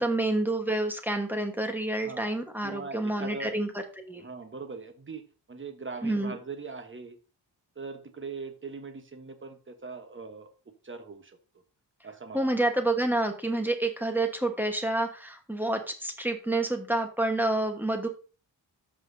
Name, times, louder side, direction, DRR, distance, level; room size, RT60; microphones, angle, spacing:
voice 1, 0.0-3.7 4.0-4.3 6.0-6.4 12.3-18.1, right 2 dB, 5° right, 5 dB, 1.2 m, -28 dB
voice 2, 2.6-3.6 4.1-7.2 7.8-10.5 10.8-11.4 12.0-12.5, right 4 dB, 30° right, 8 dB, 1.1 m, -41 dB
13.5 x 5.8 x 2.7 m, 0.35 s
wide cardioid pair, 130°, 43 cm